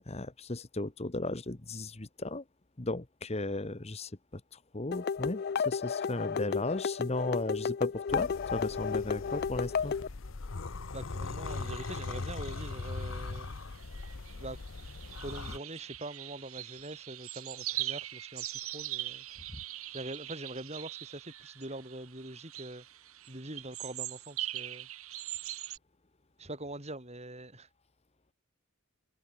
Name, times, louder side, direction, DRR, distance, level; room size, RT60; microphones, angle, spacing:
voice 1, 0.1-2.4 2.8-9.9, left 2 dB, 30° left, 1.1 m, -36 dB
sound 1, 4.9-10.1, left 6 dB, 45° left, 0.4 m, -32 dB
sound 2, 8.1-15.6, left 3 dB, 65° left, 0.8 m, -40 dB
voice 2, 10.9-13.5 14.3-14.6 15.2-19.2 19.9-22.8 23.3-24.9 26.4-27.7, right 1 dB, 30° right, 5.5 m, -43 dB
sound 3, 11.5-25.8, right 14 dB, 85° right, 3.8 m, -42 dB
head